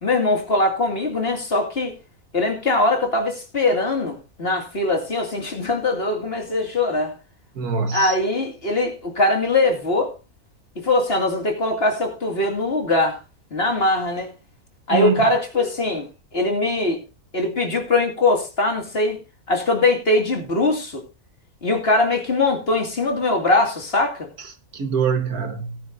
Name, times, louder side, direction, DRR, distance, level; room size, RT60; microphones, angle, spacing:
voice 1, 0.0-1.9 2.3-7.1 7.9-10.1 10.8-13.2 13.5-14.3 14.9-16.1 16.3-17.0 17.3-19.2 19.5-21.0 21.6-24.3, left 2 dB, 40° left, 2.6 m, -21 dB
voice 2, 7.6-8.1 14.9-15.3 24.7-25.8, right 6 dB, 75° right, 1.9 m, -23 dB
18.5 x 9.4 x 2.6 m
omnidirectional pair, 1.6 m